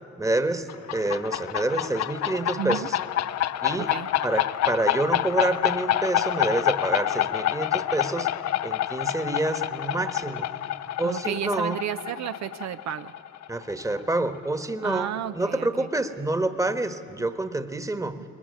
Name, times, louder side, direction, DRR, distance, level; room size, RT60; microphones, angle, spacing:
voice 1, 0.2-3.0 3.6-3.9 4.2-8.3 8.6-10.5 11.0-11.8 13.5-18.2, right 2 dB, 10° right, 10 dB, 1.3 m, -27 dB
sound 1, 0.7-14.1, left 12 dB, 60° left, 0.6 m, -28 dB
voice 2, 2.6-2.9 3.8-4.1 11.0-13.1 14.8-15.9 17.2-17.3 18.2-18.3, right 10 dB, 65° right, 11 dB, 0.6 m, -32 dB
21.0 x 20.5 x 9.6 m, 2.7 s
cardioid pair, 90°, 30 cm